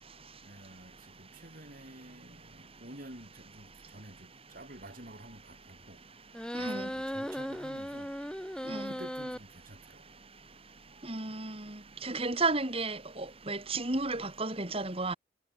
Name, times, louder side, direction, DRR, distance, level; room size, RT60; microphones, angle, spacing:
voice 1, 0.4-0.9 1.2-4.3 4.5-6.0 6.6-8.1 8.7-10.0, right 1 dB, 45° right, 6.1 m, -50 dB
sound 1, 6.3-9.4, equal, 5° left, 5.4 m, -37 dB
voice 2, 6.5-6.9 8.7-8.9 11.0-15.1, right 3 dB, 30° right, 3.4 m, -33 dB
head